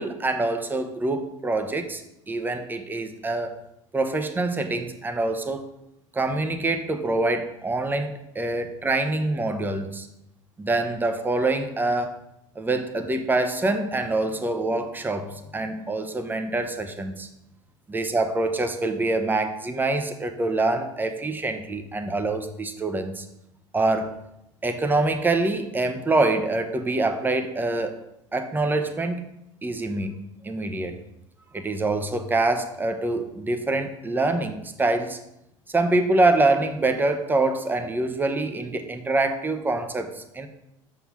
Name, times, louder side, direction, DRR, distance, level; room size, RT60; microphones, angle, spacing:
voice 1, 0.0-2.0 2.3-3.6 3.9-5.6 6.1-10.1 10.6-12.2 12.6-17.3 17.9-23.3 23.7-24.1 24.6-28.0 28.3-29.3 29.6-30.1 30.4-31.0 31.5-35.2 35.7-40.5, right 2 dB, 10° right, 6 dB, 0.8 m, -25 dB
6.8 x 3.8 x 6.1 m, 0.84 s
figure-of-eight pair, 80°, 17 cm